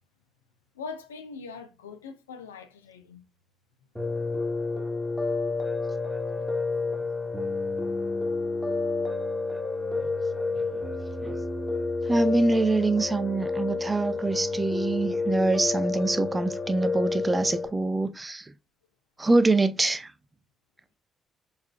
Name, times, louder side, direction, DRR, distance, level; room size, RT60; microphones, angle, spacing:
voice 1, 0.7-3.2 4.5-4.6 9.2-9.3, left 5 dB, 85° left, 0.4 m, -42 dB
Piano, 4.0-17.7, left 3 dB, 5° right, 1.1 m, -30 dB
voice 2, 10.5-10.9 11.2-11.4 12.1-18.5 19.2-20.1, right 2 dB, 25° right, 0.5 m, -25 dB
4.4 x 3.4 x 2.2 m
hypercardioid pair, 45°, 0 cm